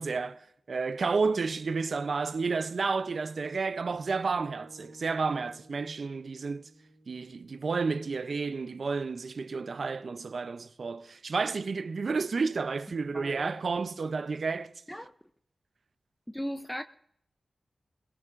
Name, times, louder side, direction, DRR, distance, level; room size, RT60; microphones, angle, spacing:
voice 1, 0.0-6.7 7.1-14.7, right 4 dB, 70° right, 0.5 m, -31 dB
sound 1, 4.4-8.6, right 2 dB, 85° right, 2.1 m, -56 dB
voice 2, 13.1-13.6 14.9-15.1 16.3-16.8, equal, 10° left, 0.5 m, -37 dB
22.0 x 17.5 x 2.5 m
cardioid pair, 40°, 0 cm